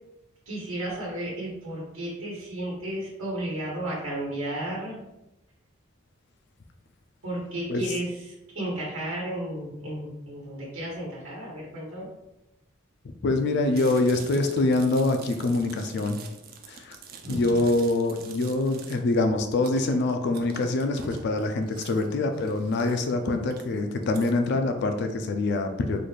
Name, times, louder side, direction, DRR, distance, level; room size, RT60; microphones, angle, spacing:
voice 1, 0.4-5.1 7.2-12.1 17.2-17.6, right 1 dB, 85° right, -6 dB, 1.2 m, -33 dB
voice 2, 13.2-16.2 16.7-17.0 17.3-26.0, left 2 dB, 55° left, 6 dB, 0.4 m, -25 dB
Chewing mastication, 13.7-24.3, right 6 dB, 50° right, 0.4 m, -47 dB
4.0 x 2.3 x 3.2 m, 0.91 s
head